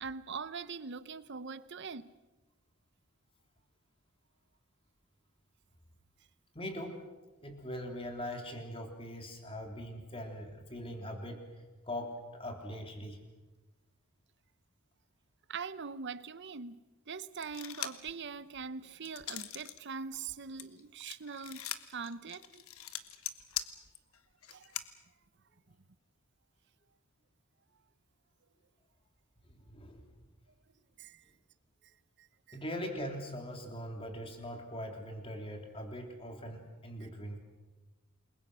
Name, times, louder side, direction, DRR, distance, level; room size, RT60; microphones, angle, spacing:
voice 1, 0.0-2.1 15.5-16.8 17.1-21.6 21.9-22.6 24.5-24.7 31.0-31.2 32.2-32.6, right 5 dB, 55° right, 0.8 m, -42 dB
voice 2, 6.6-7.0 7.4-11.5 11.9-13.2 29.5-30.1 32.5-37.4, equal, 25° left, 3.4 m, -41 dB
sound 1, 17.4-18.1 18.5-19.8 20.1-24.8, left 11 dB, 80° left, 1.3 m, -41 dB
28.5 x 22.0 x 6.3 m
head